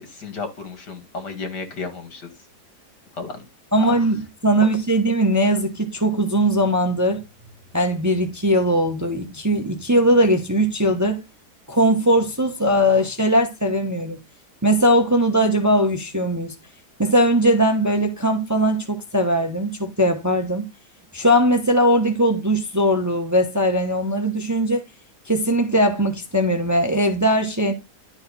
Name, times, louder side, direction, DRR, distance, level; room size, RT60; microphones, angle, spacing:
voice 1, 0.0-2.3 3.1-3.4 3.8-4.0, left 4 dB, 85° left, 2.7 m, -33 dB
voice 2, 3.7-7.2 7.7-11.2 11.7-14.2 14.6-16.5 17.0-20.7 21.1-24.8 25.3-27.7, equal, 15° right, 0.8 m, -20 dB
11.5 x 4.5 x 4.2 m
omnidirectional pair, 1.8 m